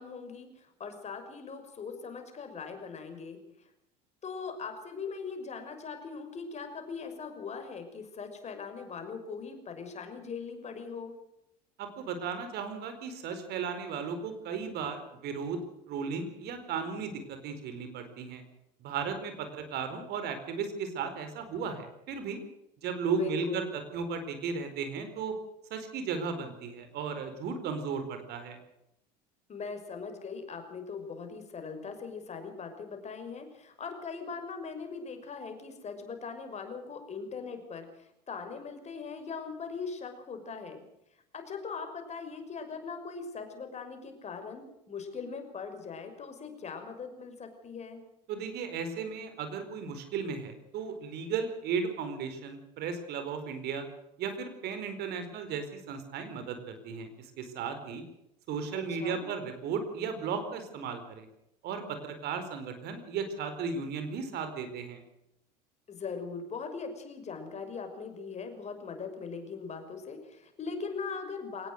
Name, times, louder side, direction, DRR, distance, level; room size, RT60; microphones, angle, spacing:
voice 1, 0.0-3.7 4.2-11.2 23.2-23.6 29.5-40.8 41.3-48.0 58.7-59.3 65.9-71.7, left 5 dB, 30° left, 6 dB, 5.9 m, -40 dB
voice 2, 11.8-15.6 15.9-18.4 18.8-22.4 22.8-25.3 25.7-28.6 48.3-53.9 54.2-58.0 58.5-61.3 61.6-65.0, right 5 dB, 50° right, 8 dB, 4.6 m, -35 dB
23.5 x 19.5 x 6.5 m, 0.82 s
figure-of-eight pair, 70°, 21 cm